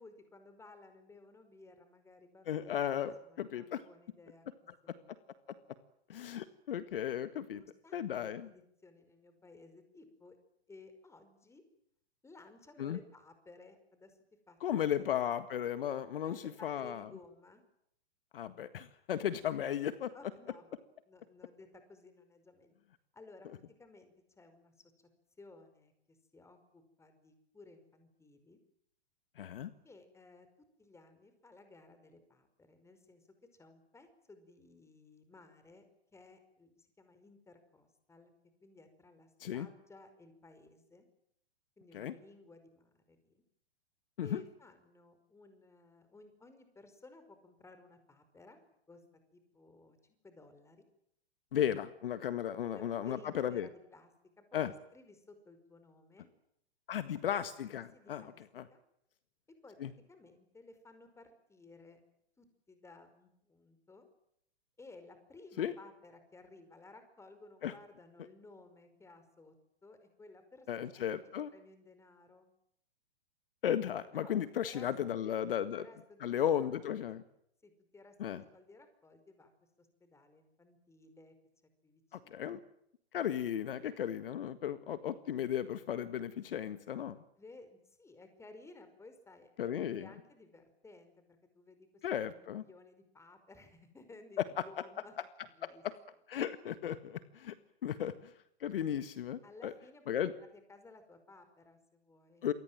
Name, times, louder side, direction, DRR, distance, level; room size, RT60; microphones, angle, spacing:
voice 1, 0.0-4.5 4.8-5.1 7.5-10.4 10.7-11.6 12.2-14.2 14.5-15.1 15.9-16.0 16.2-17.6 20.1-20.7 21.1-22.7 23.1-25.1 25.4-28.6 29.8-30.5 30.8-35.8 36.1-38.3 38.6-41.1 41.8-43.4 44.2-48.6 48.9-49.0 49.3-50.8 52.6-54.1 54.4-56.3 57.9-58.4 58.7-58.8 59.5-62.0 62.4-64.1 64.8-69.6 69.8-72.5 74.1-74.4 74.6-75.4 75.7-77.2 77.6-79.5 79.8-81.4 81.8-82.6 87.4-91.9 92.2-95.1 95.5-95.8 97.8-97.9 99.4-102.5, left 3 dB, 10° left, 9 dB, 5.2 m, -57 dB
voice 2, 2.5-3.8 6.1-7.6 7.9-8.5 12.8-13.0 14.6-17.1 18.3-20.1 29.4-29.7 39.4-39.7 41.9-42.1 44.2-44.4 51.5-53.7 54.5-54.7 56.9-58.2 58.6-58.7 59.8-59.9 65.6-65.7 67.6-67.7 70.7-71.5 73.6-75.8 76.2-77.2 78.2-78.4 82.1-82.6 83.1-87.2 89.6-90.1 92.0-92.6 95.6-95.9 96.3-97.5 97.8-98.1 98.6-99.7 100.1-100.3 102.4-102.5, left 10 dB, 60° left, 12 dB, 1.7 m, -35 dB
28.5 x 23.5 x 7.6 m, 0.74 s
figure-of-eight pair, 115°, 32 cm